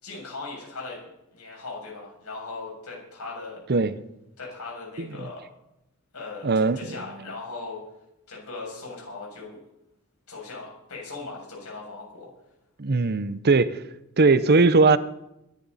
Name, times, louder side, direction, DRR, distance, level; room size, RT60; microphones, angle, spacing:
voice 1, 0.0-3.6 4.4-5.5 6.1-7.8 8.3-9.6 10.3-12.3, left 3 dB, 90° left, -2 dB, 7.2 m, -39 dB
voice 2, 6.4-6.8 12.8-13.8 14.2-15.0, right 3 dB, 45° right, 14 dB, 0.7 m, -19 dB
21.5 x 11.0 x 4.2 m, 0.88 s
head